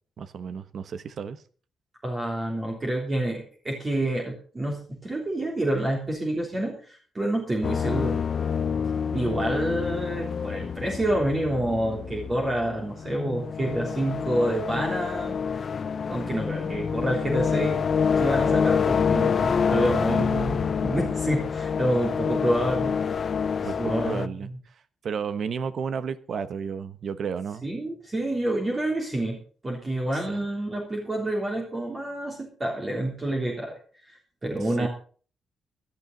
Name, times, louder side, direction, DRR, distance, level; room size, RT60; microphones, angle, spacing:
voice 1, 0.2-1.4 19.8-20.5 23.6-24.5 25.0-27.7 30.1-30.5 34.8-34.9, right 6 dB, 55° right, 13 dB, 1.1 m, -33 dB
voice 2, 2.0-8.2 9.1-15.6 16.1-17.9 18.2-22.9 23.8-24.3 27.6-33.7 34.0-34.9, right 1 dB, 25° right, -1 dB, 3.3 m, -28 dB
sound 1, 7.6-24.3, left 6 dB, 45° left, 0.7 m, -27 dB
16.5 x 12.5 x 4.0 m, 0.42 s
cardioid pair, 125°, 0 cm